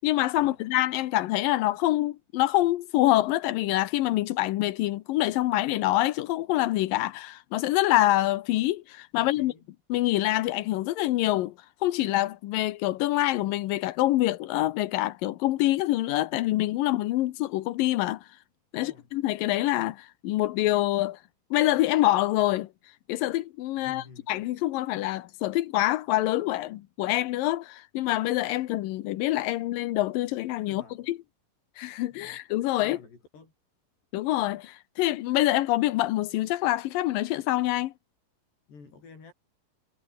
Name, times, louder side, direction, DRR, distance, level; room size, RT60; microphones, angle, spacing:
voice 1, 0.0-9.5 9.9-11.5 11.8-18.3 18.7-21.2 21.5-22.7 23.1-31.2 31.8-33.0 34.1-37.9, left 16 dB, 90° left, 1.9 m, -26 dB
voice 2, 9.2-9.7 18.7-19.1 23.8-24.3 30.7-31.1 32.1-32.4 32.8-33.5 38.7-39.3, left 4 dB, 65° left, 9.5 m, -50 dB
omnidirectional pair, 5.3 m